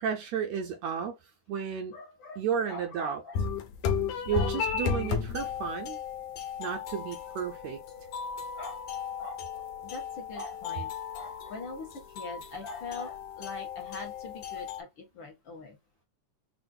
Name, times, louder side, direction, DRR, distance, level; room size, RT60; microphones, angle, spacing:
voice 1, 0.0-1.1 1.5-1.9 2.4-3.2 4.3-6.0 6.6-7.8, right 7 dB, 75° right, 1.7 m, -32 dB
voice 2, 1.9-3.4 4.3-4.5 8.6-8.8 9.2-11.9 12.1-15.8, left 3 dB, 55° left, 1.4 m, -42 dB
sound 1, 3.4-14.8, left 6 dB, 75° left, 2.0 m, -35 dB
6.2 x 2.5 x 2.3 m
omnidirectional pair, 3.6 m